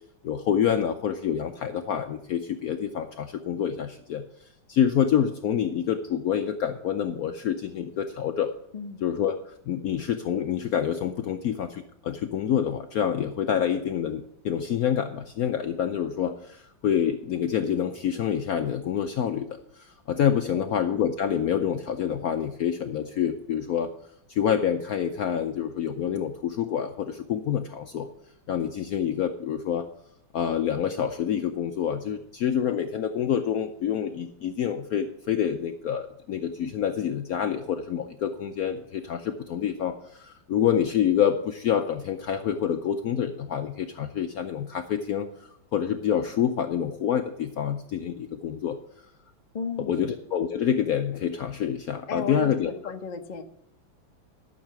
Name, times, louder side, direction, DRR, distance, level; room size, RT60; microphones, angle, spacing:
voice 1, 0.2-4.2 4.7-8.5 9.0-23.9 24.3-28.1 28.5-29.9 30.3-48.8 49.8-52.9, left 9 dB, 70° left, 7 dB, 0.8 m, -27 dB
voice 2, 8.7-9.0 20.5-20.7 49.5-50.1 52.1-53.4, left 5 dB, 50° left, 5 dB, 0.5 m, -35 dB
12.0 x 6.5 x 6.0 m, 0.74 s
omnidirectional pair, 2.1 m